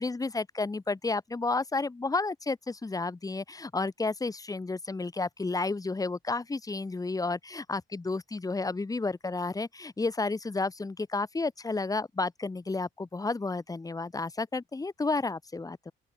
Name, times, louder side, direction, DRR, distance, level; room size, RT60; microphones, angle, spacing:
voice 1, 0.0-15.9, left 3 dB, 20° left, 1.3 m, -31 dB
open air
cardioid pair, 90°, 20 cm